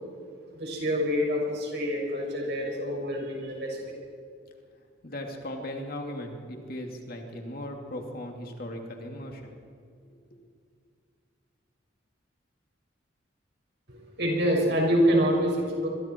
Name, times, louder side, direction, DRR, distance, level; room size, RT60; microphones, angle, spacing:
voice 1, 0.5-3.8 13.9-15.9, equal, 60° right, -1 dB, 6.1 m, -26 dB
voice 2, 5.0-9.6, left 1 dB, 50° left, 2 dB, 2.7 m, -37 dB
25.0 x 22.5 x 4.6 m, 2.2 s
head